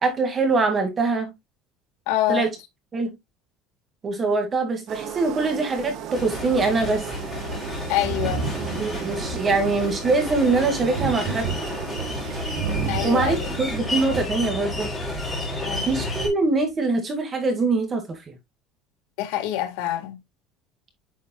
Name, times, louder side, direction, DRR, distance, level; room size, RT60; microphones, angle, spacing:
voice 1, 0.0-1.3 2.3-2.5 2.9-3.1 4.0-7.1 8.8-11.5 13.0-14.9 15.9-18.3, right 3 dB, 20° right, 2.1 m, -23 dB
voice 2, 2.1-2.5 7.9-8.5 12.9-13.5 15.6-15.9 19.2-20.2, left 13 dB, 75° left, 1.6 m, -26 dB
sound 1, 4.9-14.7, right 9 dB, 50° right, 1.2 m, -37 dB
sound 2, 6.1-16.3, left 2 dB, 5° left, 3.6 m, -31 dB
Thunder, 8.0-15.3 16.4-16.5, right 5 dB, 80° right, 4.3 m, -32 dB
9.2 x 5.1 x 2.3 m
cardioid pair, 165°, 0 cm